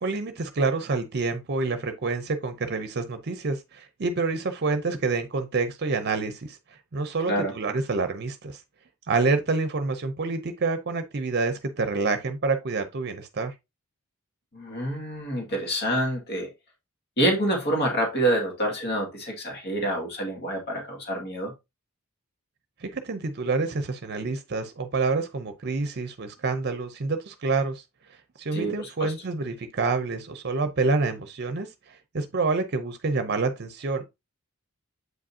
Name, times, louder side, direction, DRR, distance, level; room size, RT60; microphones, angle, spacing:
voice 1, 0.0-6.6 6.9-8.6 9.1-13.5 22.8-27.8 28.1-34.0, right 3 dB, 50° right, 0.7 m, -27 dB
voice 2, 14.5-16.5 17.2-21.5 28.5-29.1, right 1 dB, 50° left, 2.1 m, -27 dB
7.9 x 5.1 x 2.7 m
head